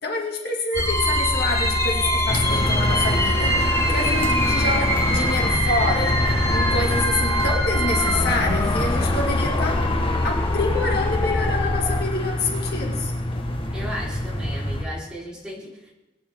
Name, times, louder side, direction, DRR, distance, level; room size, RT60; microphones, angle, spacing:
voice 1, 0.0-6.2 6.5-9.8 10.2-13.1, left 3 dB, 60° left, -1 dB, 2.2 m, -27 dB
sound 1, 0.7-12.0, left 2 dB, 15° left, 0.4 m, -24 dB
sound 2, 0.7-8.2, right 3 dB, 85° right, 3.7 m, -26 dB
sound 3, 2.3-14.8, left 1 dB, 30° left, 1.3 m, -27 dB
voice 2, 13.7-15.9, equal, 5° right, -6 dB, 3.9 m, -35 dB
22.0 x 9.8 x 3.6 m, 1.0 s
head